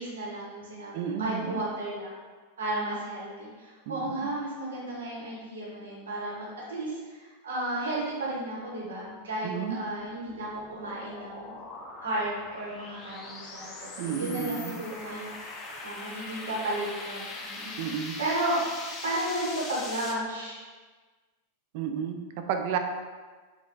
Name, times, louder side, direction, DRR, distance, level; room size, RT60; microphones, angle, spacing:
voice 1, 0.0-2.1 2.6-11.5 12.0-15.3 15.8-18.6 19.0-20.5, right 1 dB, 85° right, -5 dB, 1.0 m, -33 dB
voice 2, 0.9-1.6 3.9-4.1 9.4-9.8 14.0-14.8 17.8-18.2 21.7-22.8, right 8 dB, 60° right, 6 dB, 0.3 m, -32 dB
sound 1, 9.6-20.1, left 3 dB, 30° left, 0.5 m, -41 dB
3.6 x 2.3 x 2.6 m, 1.4 s
hypercardioid pair, 115°, 0 cm